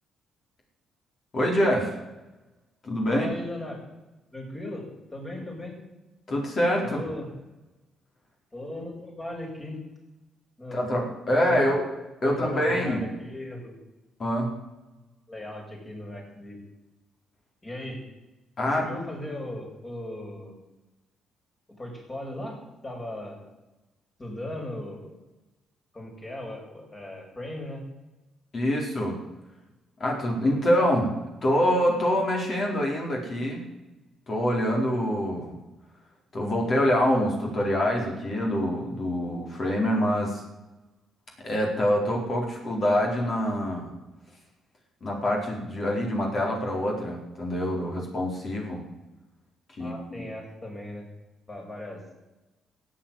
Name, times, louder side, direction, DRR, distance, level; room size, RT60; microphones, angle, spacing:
voice 1, 1.3-1.9 2.8-3.3 6.3-7.0 10.7-11.8 12.2-13.0 14.2-14.5 18.6-18.9 28.5-29.2 30.0-31.1 31.4-33.7 34.3-35.5 36.3-40.4 41.4-43.9 45.0-48.8 49.7-50.2, equal, 45° left, 0 dB, 4.6 m, -25 dB
voice 2, 3.1-3.8 4.3-5.8 6.8-7.3 8.5-9.8 10.6-10.8 11.3-11.7 12.2-13.8 15.3-16.6 17.6-18.0 18.6-20.5 21.7-23.4 24.2-25.2 25.9-27.8 49.8-51.1 51.5-52.0, left 1 dB, 25° left, 0 dB, 6.7 m, -37 dB
14.5 x 8.8 x 9.2 m, 1.1 s
cardioid pair, 90°, 0 cm